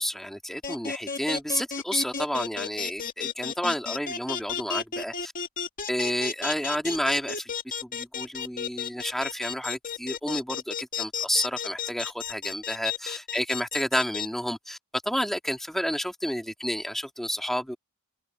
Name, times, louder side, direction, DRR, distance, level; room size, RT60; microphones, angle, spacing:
voice 1, 0.0-5.3 5.9-7.5 7.8-14.8 15.0-17.8, equal, ahead, 2.3 m, -30 dB
sound 1, 0.6-14.3, left 7 dB, 40° left, 2.2 m, -32 dB
open air
head